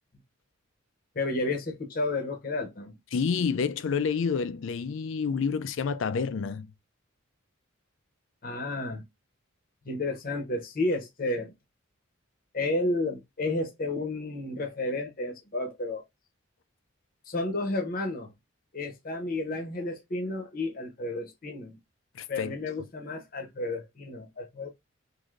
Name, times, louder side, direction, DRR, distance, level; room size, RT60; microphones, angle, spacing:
voice 1, 1.1-3.0 8.4-9.0 9.9-11.5 12.5-16.0 17.3-18.3 18.7-21.8 22.3-24.7, left 2 dB, 45° left, 0.7 m, -31 dB
voice 2, 3.1-6.7 22.2-22.5, left 5 dB, 70° left, 0.4 m, -28 dB
3.2 x 2.6 x 2.4 m
head